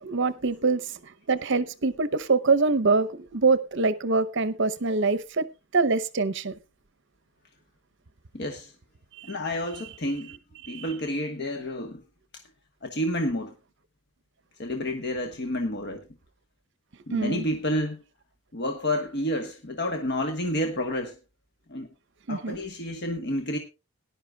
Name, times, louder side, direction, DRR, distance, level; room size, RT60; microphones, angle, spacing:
voice 1, 0.0-5.5 5.7-6.5 9.2-9.3 10.7-10.8 17.1-17.5 22.3-22.6, right 4 dB, 60° right, 0.8 m, -24 dB
voice 2, 8.3-8.7 9.2-10.4 10.7-12.0 12.8-13.5 14.6-16.1 17.1-18.0 18.5-21.2 21.7-21.9 22.3-23.6, left 1 dB, 55° left, 1.3 m, -29 dB
18.5 x 11.0 x 2.3 m
head